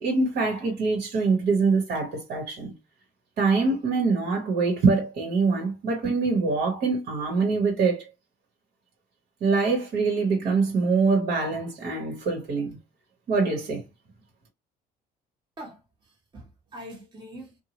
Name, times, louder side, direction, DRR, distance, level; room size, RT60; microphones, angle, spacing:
voice 1, 0.0-2.7 3.4-8.0 9.4-12.8 13.3-13.8, right 4 dB, 65° right, 1.3 m, -24 dB
voice 2, 15.6-17.6, equal, 25° right, 1.3 m, -43 dB
2.7 x 2.2 x 2.9 m
cardioid pair, 110°, 17 cm